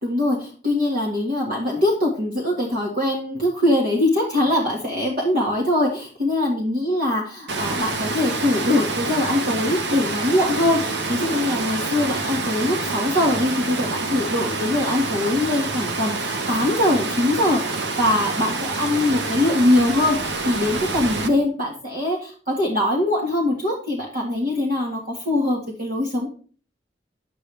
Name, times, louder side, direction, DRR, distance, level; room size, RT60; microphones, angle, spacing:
voice 1, 0.0-26.3, left 1 dB, 55° right, -2 dB, 1.7 m, -22 dB
Water, 7.5-21.3, right 3 dB, 85° right, 1.0 m, -27 dB
9.8 x 7.9 x 3.3 m, 0.41 s
head